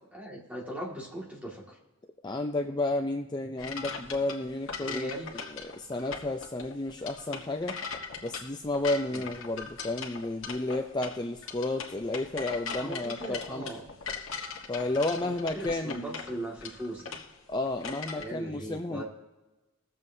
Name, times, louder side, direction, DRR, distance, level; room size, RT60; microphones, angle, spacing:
voice 1, 0.1-1.8 4.8-5.4 9.1-9.2 12.8-13.8 15.2-17.3 18.1-19.0, right 1 dB, 5° right, -3 dB, 1.9 m, -39 dB
voice 2, 2.2-5.1 5.5-7.8 8.2-13.7 14.7-16.1 17.5-19.0, left 2 dB, 20° left, 5 dB, 0.5 m, -32 dB
sound 1, 3.6-18.2, left 5 dB, 70° left, 1.4 m, -40 dB
21.5 x 7.6 x 2.7 m, 1.1 s
head